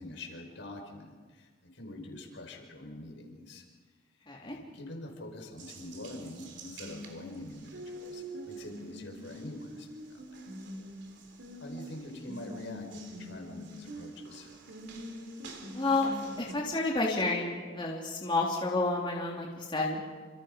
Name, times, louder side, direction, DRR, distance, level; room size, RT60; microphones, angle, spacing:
voice 1, 0.0-3.6 4.4-10.2 11.6-14.5, left 1 dB, 75° left, 2 dB, 5.4 m, -45 dB
Water tap faucet, 5.6-16.5, equal, 65° right, 3.4 m, -45 dB
voice 2, 15.7-16.1 16.4-20.0, left 3 dB, 25° left, -3 dB, 3.3 m, -30 dB
28.0 x 27.5 x 5.3 m, 1.5 s
head